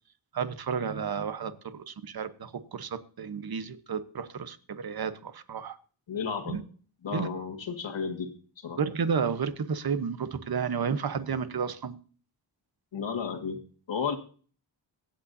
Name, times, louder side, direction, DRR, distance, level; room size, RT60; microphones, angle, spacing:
voice 1, 0.3-5.8 6.5-6.6 7.1-7.3 8.8-11.9, right 6 dB, 55° right, 12 dB, 1.0 m, -32 dB
voice 2, 6.1-6.6 7.0-8.8 12.9-13.6 13.9-14.2, left 6 dB, 75° left, 6 dB, 1.8 m, -33 dB
24.5 x 8.6 x 2.7 m, 0.42 s
wide cardioid pair, 130°, 45 cm